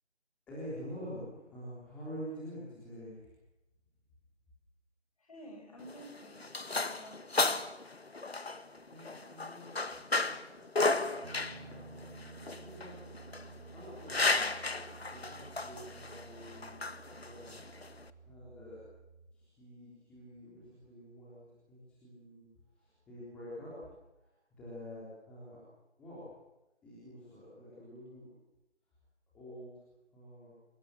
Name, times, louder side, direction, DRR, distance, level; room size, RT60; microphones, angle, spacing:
voice 1, 0.5-3.3 8.9-12.2 12.6-12.9 13.5-14.3 14.9-17.6 18.3-18.8 19.3-25.6 26.0-26.2 26.8-28.3 29.3-29.8 30.1-30.5, equal, 5° left, -9 dB, 3.6 m, -48 dB
voice 2, 5.2-7.5, equal, 30° left, 3 dB, 6.5 m, -52 dB
sound 1, 5.8-18.1, left 3 dB, 60° left, 1.6 m, -34 dB
Piano, 11.2-19.3, right 4 dB, 35° right, 2.1 m, -53 dB
26.5 x 24.0 x 7.6 m, 0.94 s
figure-of-eight pair, 165°, 35 cm